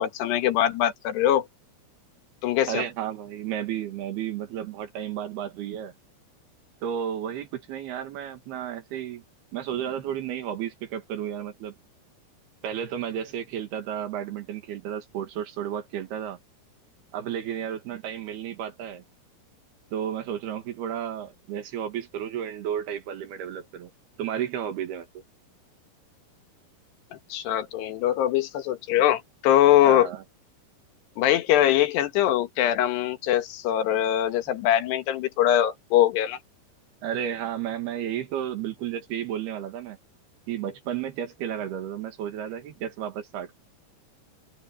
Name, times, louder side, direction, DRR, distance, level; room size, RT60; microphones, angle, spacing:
voice 1, 0.0-1.5 2.4-2.8 27.3-30.1 31.2-36.4, left 12 dB, 75° left, 3.5 m, -22 dB
voice 2, 2.7-5.9 6.8-9.2 9.5-11.7 12.6-16.4 17.1-19.0 19.9-23.9 24.2-25.1 29.9-30.2 37.0-40.0 40.5-43.5, right 9 dB, 70° right, 3.7 m, -32 dB
omnidirectional pair, 4.9 m